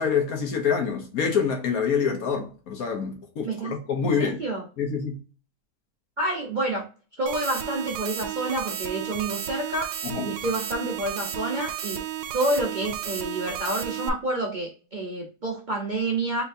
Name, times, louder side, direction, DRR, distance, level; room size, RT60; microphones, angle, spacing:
voice 1, 0.0-4.4 4.8-5.2 10.0-10.3, left 6 dB, 60° left, 1.3 m, -26 dB
voice 2, 3.4-3.8 4.0-4.7 6.2-6.8 7.2-9.9 10.2-12.0 12.3-16.4, right 2 dB, 40° right, 0.7 m, -28 dB
sound 1, 7.3-14.1, right 10 dB, 85° right, 1.2 m, -33 dB
4.4 x 3.4 x 2.6 m
omnidirectional pair, 1.8 m